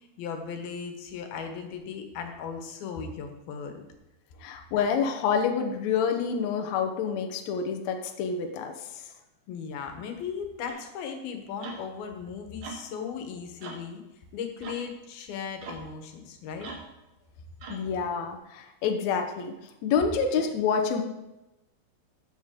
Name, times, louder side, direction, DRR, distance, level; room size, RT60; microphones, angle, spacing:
voice 1, 0.0-3.9 9.5-14.0 14.3-16.7, left 6 dB, 70° left, 5 dB, 2.9 m, -37 dB
voice 2, 4.4-8.7 17.7-19.5 19.8-21.0, left 6 dB, 90° left, 4 dB, 1.5 m, -27 dB
sound 1, 10.7-10.9 11.6-11.9 12.6-12.9 13.6-13.9 14.6-14.9 15.6-15.9 16.6-17.0 17.6-17.9, right 4 dB, 65° right, 2.6 m, -41 dB
14.0 x 7.6 x 3.7 m, 0.99 s
omnidirectional pair, 4.7 m